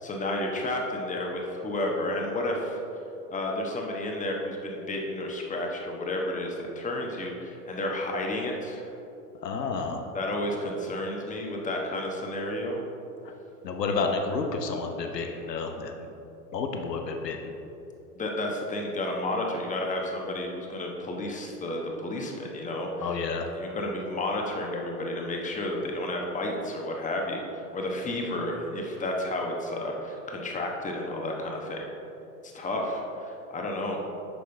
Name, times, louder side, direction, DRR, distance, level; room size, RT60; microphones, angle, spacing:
voice 1, 0.0-2.8 3.3-8.9 10.1-12.8 13.9-14.0 15.2-15.5 18.1-23.2 23.5-31.9 32.4-34.0, left 1 dB, 15° left, 0 dB, 1.2 m, -31 dB
voice 2, 9.4-10.0 13.6-16.1 16.5-17.5 23.0-23.5, left 4 dB, 85° left, 4 dB, 0.9 m, -30 dB
9.7 x 6.4 x 3.4 m, 2.9 s
hypercardioid pair, 100°, 48 cm